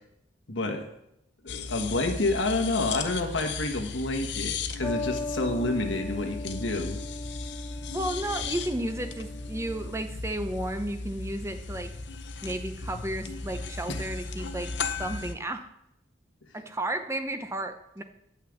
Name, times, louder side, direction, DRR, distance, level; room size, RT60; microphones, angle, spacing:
voice 1, 0.5-0.9 1.4-7.0 13.9-14.0, left 2 dB, 85° left, 5 dB, 1.4 m, -29 dB
sound 1, 1.5-15.3, left 4 dB, 65° left, 0.7 m, -36 dB
sound 2, 4.8-10.0, left 3 dB, 15° left, 0.9 m, -38 dB
voice 2, 7.9-11.9 12.4-14.7 15.0-15.7 16.5-18.0, right 1 dB, 15° right, 8 dB, 0.6 m, -33 dB
10.0 x 5.8 x 7.3 m, 0.82 s
head